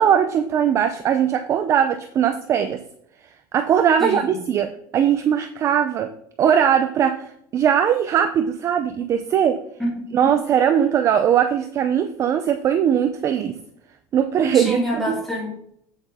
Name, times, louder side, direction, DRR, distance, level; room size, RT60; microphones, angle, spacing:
voice 1, 0.0-2.8 3.5-6.1 6.4-9.6 10.1-13.6 14.1-14.8 15.1-15.2, right 8 dB, 25° right, 9 dB, 0.5 m, -20 dB
voice 2, 4.0-4.4 9.8-9.9 10.2-10.3 14.5-15.5, equal, ahead, -4 dB, 2.7 m, -26 dB
8.3 x 7.8 x 3.6 m, 0.69 s
cardioid pair, 170°, 11 cm